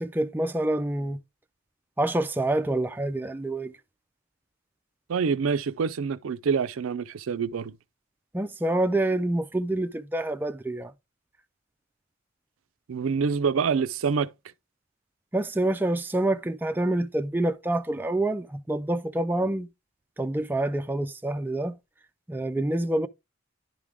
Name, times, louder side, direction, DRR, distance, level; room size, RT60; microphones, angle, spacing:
voice 1, 0.0-1.2 2.0-3.7 8.3-10.9 15.3-19.7 20.2-21.8 22.3-23.1, right 1 dB, 10° right, 0.3 m, -27 dB
voice 2, 5.1-7.7 12.9-14.3, right 5 dB, 80° right, 0.4 m, -26 dB
10.5 x 3.6 x 3.4 m
head